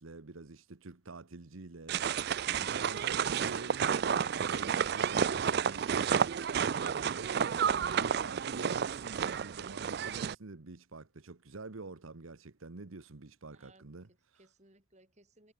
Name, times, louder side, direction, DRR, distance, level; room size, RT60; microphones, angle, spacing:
voice 1, 0.0-14.4, right 3 dB, 85° right, 1.1 m, -47 dB
sound 1, 1.9-10.3, right 7 dB, 50° right, 0.4 m, -31 dB
voice 2, 13.5-15.5, right 2 dB, 35° right, 3.7 m, -64 dB
head